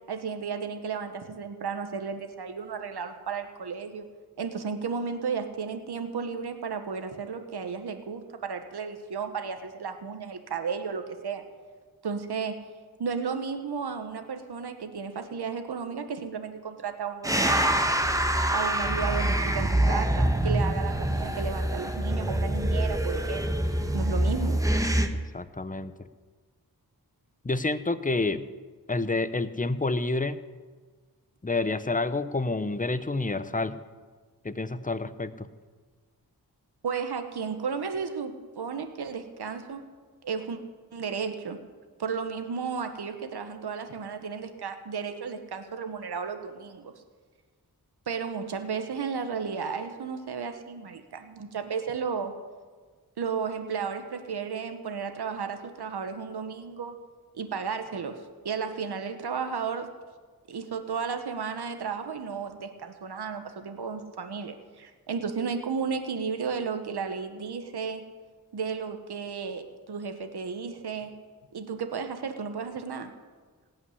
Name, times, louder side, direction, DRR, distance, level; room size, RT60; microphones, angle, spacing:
voice 1, 0.1-4.1 4.4-11.4 12.0-12.6 13.0-17.8 18.5-23.6 23.9-24.6 36.8-39.8 40.2-40.6 40.9-41.6 42.0-46.9 48.1-52.3 53.2-56.9 57.3-59.9 60.5-68.0 68.5-71.1 71.5-73.1, right 6 dB, 85° right, 7 dB, 1.2 m, -33 dB
sound 1, 17.2-25.1, right 1 dB, 10° right, 1.3 m, -25 dB
voice 2, 25.1-25.9 27.4-28.5 28.9-30.4 31.4-33.8 34.4-35.5, left 3 dB, 20° left, 13 dB, 0.8 m, -29 dB
17.0 x 5.7 x 9.7 m, 1.5 s
cardioid pair, 55°, 38 cm